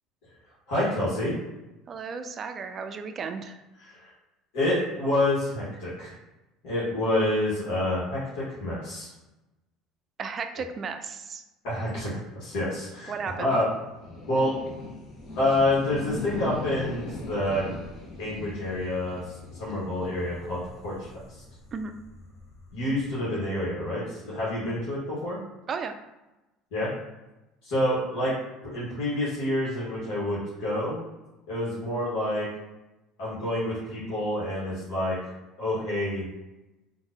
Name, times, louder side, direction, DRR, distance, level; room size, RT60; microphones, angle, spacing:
voice 1, 0.7-1.3 3.8-4.1 4.5-6.1 6.6-9.1 11.6-13.7 14.3-14.6 15.3-17.6 18.2-21.4 22.7-25.4 26.7-26.9 27.6-28.3 28.6-31.0 31.5-32.5 33.2-35.3 35.6-36.3, left 1 dB, 75° left, -9 dB, 1.5 m, -28 dB
voice 2, 1.9-3.6 10.2-11.4 13.1-13.6 21.7-21.9 25.7-25.9, right 5 dB, 40° right, 8 dB, 0.4 m, -34 dB
sound 1, 12.9-23.3, left 2 dB, 45° left, 1.0 m, -40 dB
3.8 x 2.6 x 2.6 m, 1.0 s
supercardioid pair, 85°, 0 cm